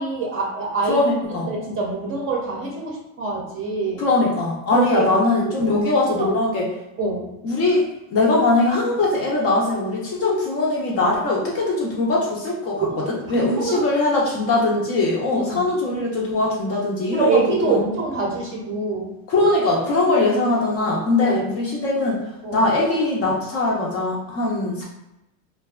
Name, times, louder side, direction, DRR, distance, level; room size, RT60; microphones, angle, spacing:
voice 1, 0.0-1.0 1.3-4.0 4.7-5.1 5.4-5.9 6.2-6.3 7.0-7.3 12.8-13.0 13.3-14.4 14.7-14.8 15.3-15.7 17.1-19.1 21.2-21.4 22.4-22.6, right 3 dB, 30° right, -2 dB, 0.6 m, -25 dB
voice 2, 0.9-1.5 4.0-6.6 7.4-17.8 19.3-22.2 22.5-24.8, left 2 dB, 35° left, -3 dB, 0.5 m, -21 dB
2.5 x 2.1 x 2.3 m, 0.89 s
supercardioid pair, 140°, 43 cm